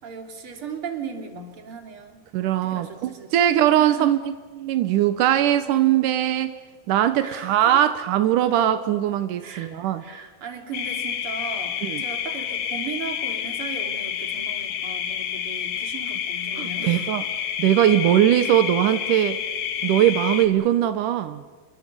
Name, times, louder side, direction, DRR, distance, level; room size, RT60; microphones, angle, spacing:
voice 1, 0.0-4.2 7.2-7.8 9.4-17.1, right 6 dB, 35° right, 4 dB, 3.1 m, -37 dB
voice 2, 2.3-4.2 4.6-6.6 6.9-10.0 11.8-12.0 16.6-17.2 17.6-19.4 19.8-21.4, right 11 dB, 85° right, 10 dB, 1.8 m, -20 dB
sound 1, 10.7-20.5, left 9 dB, 60° left, 1.9 m, -29 dB
27.5 x 23.5 x 6.8 m, 1.4 s
omnidirectional pair, 5.1 m